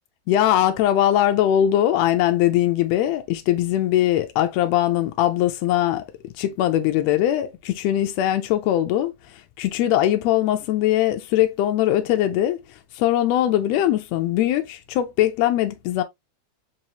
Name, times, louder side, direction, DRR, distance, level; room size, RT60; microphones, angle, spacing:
voice 1, 0.3-6.0 6.4-9.1 9.6-12.6 13.0-16.0, left 12 dB, 80° left, 1.6 m, -21 dB
4.8 x 3.0 x 2.7 m
omnidirectional pair, 3.4 m